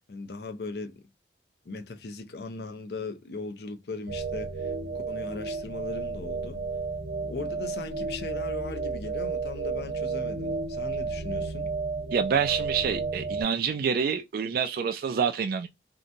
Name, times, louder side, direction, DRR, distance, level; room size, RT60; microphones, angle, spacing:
voice 1, 0.1-1.0 1.7-4.7 5.1-6.6 7.3-11.7, left 3 dB, 60° left, 0.5 m, -38 dB
sound 1, 4.1-13.4, right 4 dB, 90° right, 0.8 m, -32 dB
voice 2, 12.1-15.7, right 6 dB, 55° right, 0.3 m, -27 dB
2.8 x 2.2 x 2.5 m
head